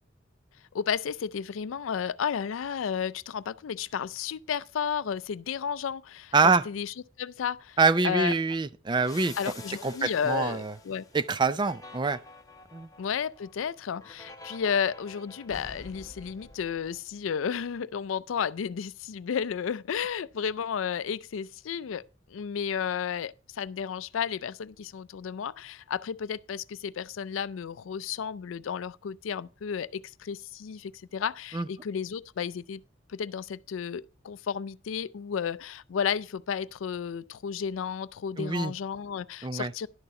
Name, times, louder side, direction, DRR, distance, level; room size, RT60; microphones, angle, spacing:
voice 1, 0.7-7.8 8.0-8.3 9.4-11.0 13.0-22.0 22.3-32.8 33.1-39.9, left 7 dB, 90° left, 0.4 m, -32 dB
voice 2, 6.3-6.6 7.8-9.3 9.8-10.7 11.1-12.2 12.7-12.9 31.5-31.7 38.4-38.7 39.4-39.7, right 4 dB, 25° right, 0.4 m, -25 dB
sound 1, 9.0-17.5, left 2 dB, 20° left, 0.9 m, -48 dB
11.0 x 6.8 x 4.7 m
head